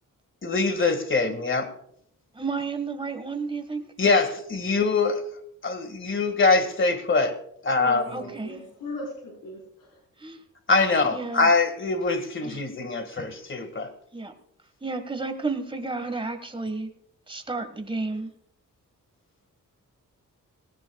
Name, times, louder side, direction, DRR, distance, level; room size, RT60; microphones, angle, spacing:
voice 1, 0.4-1.7 4.0-5.2 5.6-7.4 7.6-8.0 10.7-13.9, left 3 dB, 35° left, 9 dB, 1.8 m, -23 dB
voice 2, 2.3-3.8 8.1-8.7 10.2-10.4 11.1-11.5 12.4-12.6 14.1-14.3 14.8-16.9 17.3-18.3, right 3 dB, 15° right, 7 dB, 1.5 m, -32 dB
voice 3, 7.8-10.0, left 2 dB, 85° left, -2 dB, 4.5 m, -37 dB
19.5 x 17.5 x 2.3 m, 0.71 s
wide cardioid pair, 125°, 33 cm